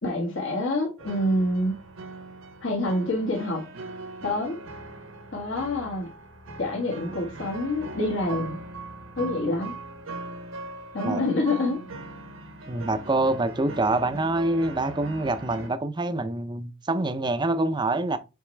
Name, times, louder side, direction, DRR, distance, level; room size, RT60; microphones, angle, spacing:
voice 1, 0.0-1.8 2.6-3.6 4.2-4.6 5.3-6.1 6.6-8.6 9.2-9.7 10.9-11.8, left 1 dB, 65° left, 1.5 m, -27 dB
sound 1, 1.0-15.7, right 2 dB, 80° right, 1.1 m, -40 dB
voice 2, 12.7-18.2, right 2 dB, 20° right, 0.5 m, -26 dB
7.0 x 4.2 x 3.2 m
head